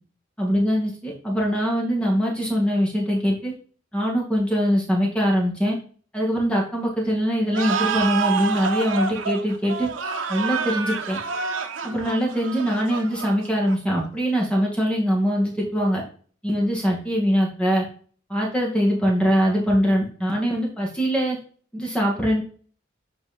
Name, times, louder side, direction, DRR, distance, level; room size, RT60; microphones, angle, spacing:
voice 1, 0.4-3.5 3.9-5.8 6.1-9.9 10.3-11.2 11.8-16.0 16.4-17.9 18.3-21.4 21.7-22.4, equal, 5° left, -2 dB, 2.0 m, -22 dB
sound 1, 7.5-14.0, right 5 dB, 80° right, 0.8 m, -28 dB
8.0 x 4.8 x 4.3 m, 0.43 s
head